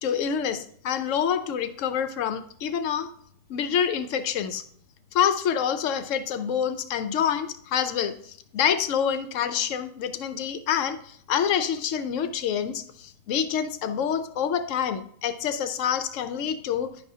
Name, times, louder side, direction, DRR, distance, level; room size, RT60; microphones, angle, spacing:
voice 1, 0.0-3.1 3.5-4.6 5.1-16.9, left 8 dB, 75° left, 10 dB, 0.7 m, -27 dB
10.5 x 6.8 x 2.7 m, 0.63 s
omnidirectional pair, 1.9 m